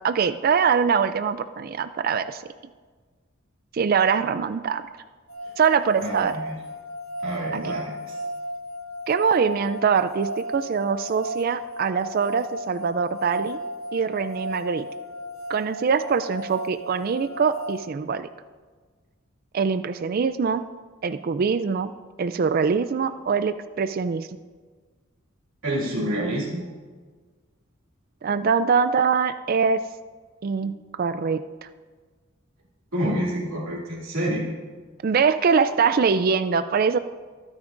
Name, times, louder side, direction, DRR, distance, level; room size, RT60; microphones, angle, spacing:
voice 1, 0.0-2.4 3.7-4.8 5.6-6.4 7.5-7.8 9.1-13.6 13.9-14.9 15.5-18.3 19.5-20.7 21.0-21.9 22.2-24.3 28.2-29.8 30.4-30.7 31.0-31.4 35.0-37.0, right 6 dB, 45° right, 11 dB, 0.4 m, -23 dB
sound 1, 5.3-17.8, equal, 85° left, 1.3 m, -35 dB
voice 2, 6.0-6.6 7.2-8.2 25.6-26.7 30.6-30.7 32.9-34.5, right 1 dB, 85° right, -7 dB, 2.4 m, -28 dB
24.5 x 9.6 x 2.6 m, 1.4 s
head